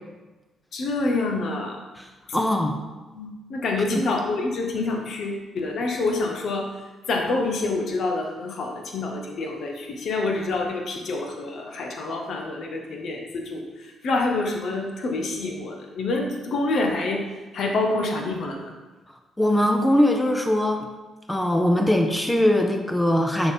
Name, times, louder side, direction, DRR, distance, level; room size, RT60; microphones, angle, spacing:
voice 1, 0.7-1.9 3.1-6.7 7.1-13.6 14.0-17.2 17.5-18.7, left 2 dB, 50° left, 2 dB, 1.1 m, -27 dB
voice 2, 2.3-2.8 3.9-4.0 19.4-20.9 21.3-23.5, left 1 dB, 10° left, 3 dB, 0.8 m, -21 dB
10.0 x 4.1 x 4.3 m, 1.2 s
figure-of-eight pair, 40°, 0 cm